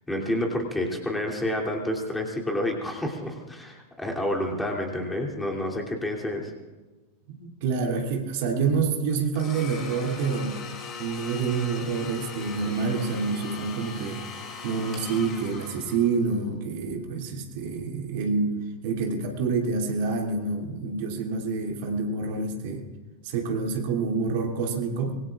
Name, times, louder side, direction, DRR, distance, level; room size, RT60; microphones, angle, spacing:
voice 1, 0.1-6.5, left 1 dB, 5° left, -1 dB, 3.0 m, -29 dB
voice 2, 7.3-10.6 11.0-14.2 14.6-18.6 18.8-22.9 23.2-25.2, right 4 dB, 50° right, 1 dB, 2.8 m, -27 dB
Domestic sounds home sounds, 9.4-16.4, left 5 dB, 30° left, 2.8 m, -40 dB
25.5 x 22.5 x 2.5 m, 1.2 s
figure-of-eight pair, 90°, 0 cm